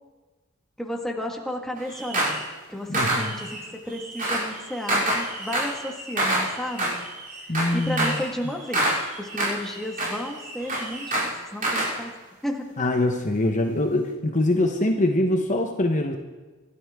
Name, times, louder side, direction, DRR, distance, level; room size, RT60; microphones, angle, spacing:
voice 1, 0.8-2.4 2.7-6.9 7.4-8.9 9.2-12.1 12.4-12.9, equal, ahead, 1 dB, 1.8 m, -33 dB
sound 1, 1.8-2.5 2.9-12.0, right 1 dB, 40° right, 6.5 m, -27 dB
voice 2, 2.9-3.2 7.5-8.2 12.8-16.2, left 1 dB, 35° left, 4 dB, 1.0 m, -23 dB
25.5 x 12.5 x 3.7 m, 1.3 s
head